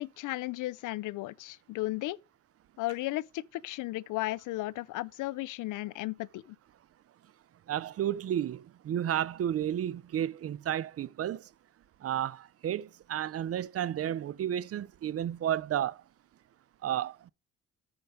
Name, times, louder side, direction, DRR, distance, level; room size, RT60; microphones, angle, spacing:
voice 1, 0.0-2.2 2.8-6.6, left 18 dB, 90° left, 0.6 m, -35 dB
voice 2, 7.7-11.5 12.0-16.0 16.8-17.3, right 10 dB, 50° right, 0.6 m, -32 dB
9.0 x 5.2 x 4.8 m
cardioid pair, 90°, 30 cm